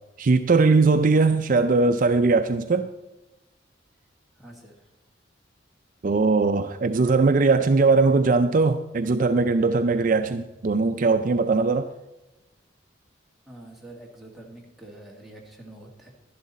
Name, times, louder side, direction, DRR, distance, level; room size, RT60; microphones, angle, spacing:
voice 1, 0.2-2.9 6.0-11.9, right 3 dB, 45° right, 8 dB, 0.4 m, -20 dB
voice 2, 4.4-4.7 13.5-16.1, right 1 dB, ahead, -2 dB, 2.0 m, -45 dB
11.5 x 11.0 x 4.2 m, 1.0 s
head